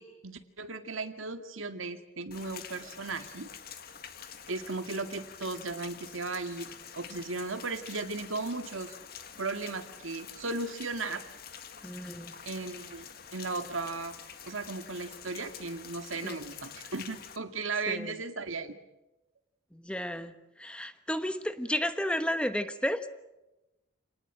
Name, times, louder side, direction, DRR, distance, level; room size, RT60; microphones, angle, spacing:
voice 1, 0.0-3.5 4.5-8.9 9.4-11.2 12.5-14.2 14.5-18.7, right 3 dB, 85° right, 8 dB, 2.1 m, -36 dB
Rain, 2.3-17.4, left 7 dB, 50° left, 1.8 m, -47 dB
voice 2, 11.8-12.3 16.2-16.4 17.9-18.1 19.7-20.3 20.6-23.1, equal, 5° left, 10 dB, 1.1 m, -32 dB
28.0 x 19.5 x 8.8 m, 0.99 s
head